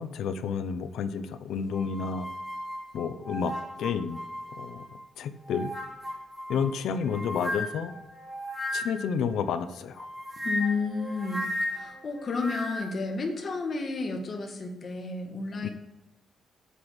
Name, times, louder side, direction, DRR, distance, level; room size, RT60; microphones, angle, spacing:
voice 1, 0.0-2.3 2.9-4.2 4.6-4.8 5.2-5.7 6.5-7.9 8.7-10.1 15.6-15.7, left 6 dB, 80° left, 11 dB, 0.8 m, -30 dB
sound 1, 1.7-5.0 5.4-9.2 10.0-13.0, left 1 dB, 5° right, 3.5 m, -36 dB
voice 2, 10.4-15.7, left 4 dB, 35° left, 2 dB, 1.7 m, -32 dB
8.3 x 6.3 x 7.4 m, 1.0 s
cardioid pair, 155°, 0 cm